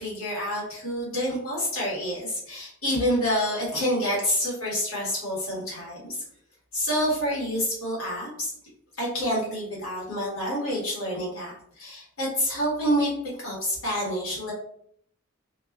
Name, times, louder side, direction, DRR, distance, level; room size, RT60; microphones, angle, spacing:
voice 1, 0.0-6.2 6.7-8.5 9.0-13.1 13.4-14.5, equal, 70° left, -6 dB, 1.3 m, -28 dB
2.6 x 2.3 x 2.2 m, 0.67 s
head